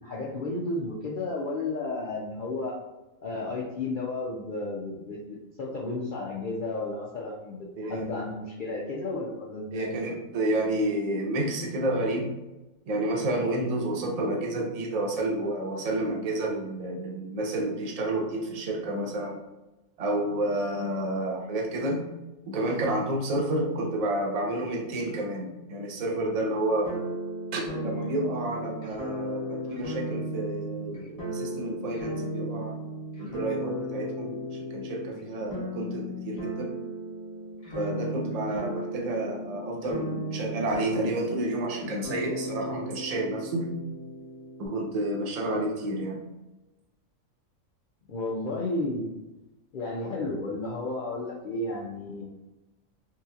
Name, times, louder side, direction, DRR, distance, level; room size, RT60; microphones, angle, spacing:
voice 1, 0.0-2.8 3.2-9.9 48.1-49.1 49.7-52.3, left 2 dB, 60° left, -4 dB, 0.5 m, -33 dB
voice 2, 9.7-12.3 12.9-19.4 20.0-22.1 22.5-26.9 27.5-32.7 33.2-36.7 37.7-43.8 44.6-46.2, right 1 dB, 45° right, 0 dB, 0.5 m, -30 dB
sound 1, 26.8-44.7, equal, 30° left, 1.0 m, -36 dB
3.7 x 2.8 x 2.4 m, 1.0 s
omnidirectional pair, 1.4 m